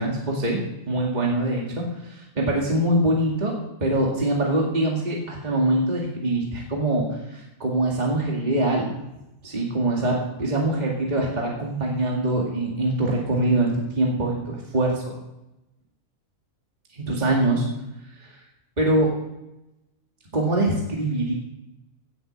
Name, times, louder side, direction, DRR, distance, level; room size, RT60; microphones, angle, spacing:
voice 1, 0.0-3.5 3.8-9.0 9.4-15.1 16.9-17.6 18.2-18.3 18.8-19.1 20.3-21.3, right 1 dB, 30° right, -2 dB, 2.3 m, -24 dB
16.5 x 7.8 x 6.4 m, 0.92 s
omnidirectional pair, 1.6 m